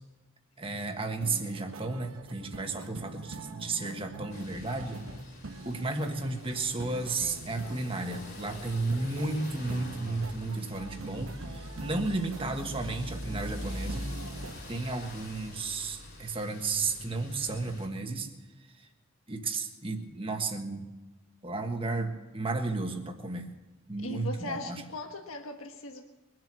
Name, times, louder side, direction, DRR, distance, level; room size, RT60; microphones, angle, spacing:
voice 1, 0.6-5.0 5.6-14.1 14.7-18.3 19.3-20.9 21.4-23.5 23.9-24.8, right 3 dB, 25° right, 4 dB, 1.5 m, -33 dB
sound 1, 1.2-14.6, right 3 dB, 80° right, 1.1 m, -45 dB
sound 2, 4.3-17.9, left 1 dB, 50° left, 4.2 m, -44 dB
voice 2, 24.0-26.0, left 2 dB, 80° left, 3 dB, 1.4 m, -38 dB
22.5 x 7.7 x 7.5 m, 1.1 s
head